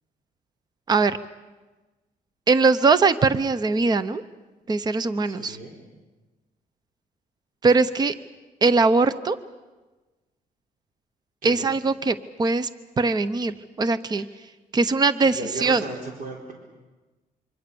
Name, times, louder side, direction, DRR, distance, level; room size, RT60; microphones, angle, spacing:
voice 1, 2.5-4.2 4.7-5.6 7.6-8.1 8.6-9.4 11.4-12.7 13.0-14.3 14.7-15.8, right 4 dB, 25° right, 14 dB, 0.8 m, -21 dB
voice 2, 5.2-5.8 11.4-11.7 15.2-16.5, right 2 dB, 65° right, 1 dB, 4.1 m, -35 dB
26.5 x 24.5 x 7.0 m, 1.2 s
cardioid pair, 145°, 16 cm